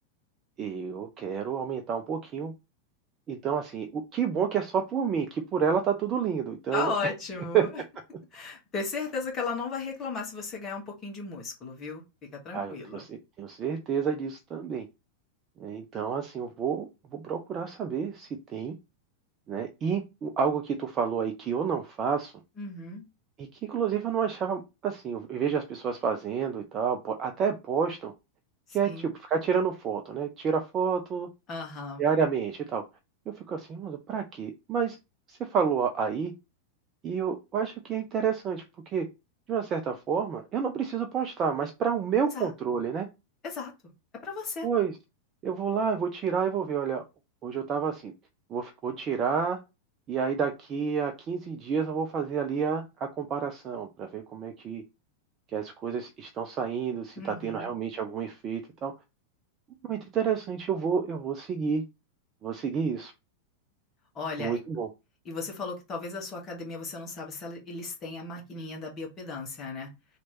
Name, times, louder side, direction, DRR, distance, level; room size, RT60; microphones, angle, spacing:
voice 1, 0.6-2.5 3.3-7.1 7.5-7.6 12.5-14.9 15.6-18.8 19.5-22.3 23.4-28.1 28.7-31.3 32.0-32.8 33.3-35.0 35.3-36.3 37.0-38.6 38.9-39.1 39.5-43.1 44.6-44.9 45.4-47.0 47.4-48.1 48.5-49.6 50.1-54.8 55.5-58.9 59.9-61.8 62.4-63.1 64.4-64.9, right 6 dB, 30° right, 0.5 m, -29 dB
voice 2, 6.7-7.8 8.3-12.0 12.3-13.0 22.6-23.0 28.7-29.1 31.5-32.0 42.3-42.5 43.4-43.7 44.2-44.7 57.2-57.7 64.1-64.6 65.2-69.9, left 4 dB, 25° left, 1.4 m, -35 dB
3.0 x 2.9 x 4.3 m
figure-of-eight pair, 90°, 0 cm